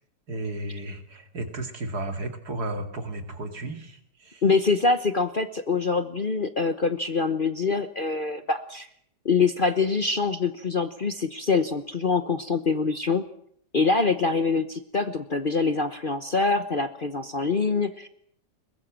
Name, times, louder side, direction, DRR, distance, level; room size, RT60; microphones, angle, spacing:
voice 1, 0.3-4.4, right 1 dB, 60° right, 7 dB, 3.0 m, -34 dB
voice 2, 4.4-8.9 9.2-13.2 13.7-18.1, left 4 dB, 35° left, 10 dB, 1.0 m, -24 dB
22.5 x 21.0 x 7.5 m, 0.64 s
omnidirectional pair, 1.9 m